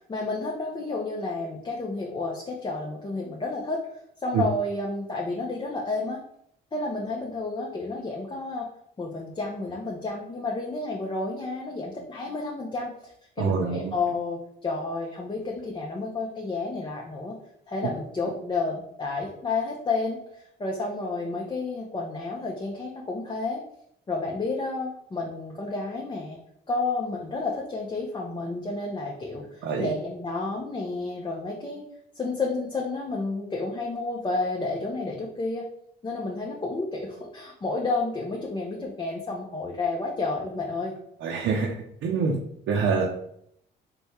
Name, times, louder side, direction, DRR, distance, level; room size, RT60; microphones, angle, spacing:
voice 1, 0.0-6.2 6.7-8.7 9.0-17.4 17.7-23.6 24.1-26.4 26.7-31.8 32.1-35.7 36.0-40.9, left 3 dB, 25° left, -2 dB, 0.6 m, -31 dB
voice 2, 13.4-13.9 29.6-29.9 41.2-41.7 42.0-42.4 42.7-43.0, right 5 dB, 75° right, -2 dB, 0.6 m, -25 dB
3.4 x 2.2 x 4.2 m, 0.72 s
cardioid pair, 90°, 20 cm